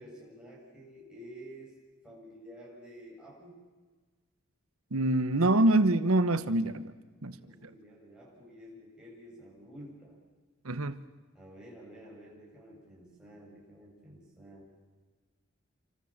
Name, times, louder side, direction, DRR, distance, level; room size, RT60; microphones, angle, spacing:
voice 1, 0.0-1.7 2.0-3.6 7.3-10.2 11.3-14.7, equal, 5° right, -5 dB, 7.9 m, -50 dB
voice 2, 4.9-6.9 7.2-7.4 7.6-7.7 10.6-11.0, right 2 dB, 80° right, 12 dB, 1.3 m, -25 dB
28.0 x 25.5 x 7.5 m, 1.4 s
head